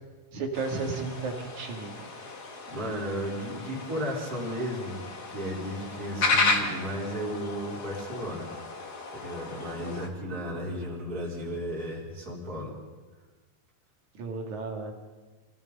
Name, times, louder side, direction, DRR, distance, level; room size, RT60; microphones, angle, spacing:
voice 1, 0.3-2.1 14.2-14.9, right 4 dB, 60° right, 2 dB, 3.7 m, -33 dB
sound 1, 0.5-10.1, left 3 dB, 35° left, 1.8 m, -33 dB
voice 2, 2.7-5.0 5.3-8.5 9.1-12.8, equal, 25° right, -4 dB, 4.3 m, -34 dB
28.0 x 18.0 x 5.6 m, 1.4 s
omnidirectional pair, 3.9 m